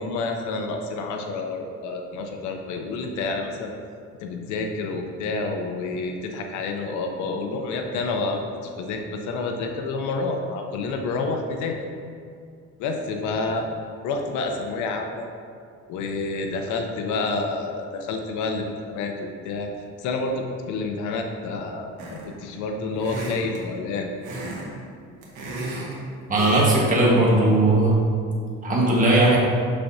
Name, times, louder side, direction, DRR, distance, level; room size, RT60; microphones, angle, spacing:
voice 1, 0.0-3.7 4.2-11.8 12.8-13.6 14.0-15.3 15.9-19.7 20.0-24.1, left 3 dB, 85° left, 3 dB, 0.8 m, -29 dB
sound 1, 22.0-22.4 23.0-23.6 24.2-24.7 25.0-25.9 26.4-26.8 27.1-27.3, right 2 dB, 85° right, 1.5 m, -33 dB
voice 2, 26.3-28.0 28.6-29.4, right 2 dB, 30° right, -4 dB, 1.5 m, -18 dB
6.7 x 5.9 x 2.7 m, 2.2 s
cardioid pair, 135°, 29 cm